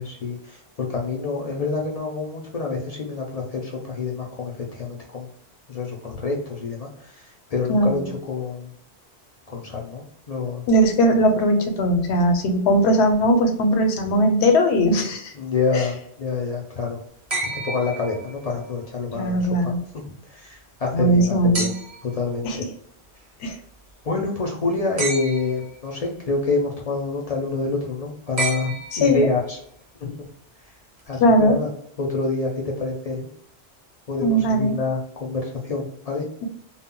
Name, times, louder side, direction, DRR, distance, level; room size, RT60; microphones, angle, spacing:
voice 1, 0.0-5.3 5.7-8.7 9.5-10.6 15.4-17.0 17.4-21.7 22.0-22.6 24.0-29.6 30.0-30.2 31.1-31.7 32.0-33.3 34.1-36.3, left 3 dB, 50° left, 0 dB, 0.4 m, -27 dB
voice 2, 7.7-8.0 10.7-15.3 15.7-15.8 19.1-19.8 20.9-21.7 22.4-22.6 23.4-23.6 28.9-29.3 31.2-31.6 34.2-34.7, equal, 85° left, 5 dB, 0.9 m, -19 dB
sound 1, 17.3-18.7 21.5-22.2 25.0-25.8 28.4-29.4 31.0-31.1, right 3 dB, 40° right, 0.6 m, -30 dB
2.1 x 2.0 x 3.6 m, 0.67 s
omnidirectional pair, 1.1 m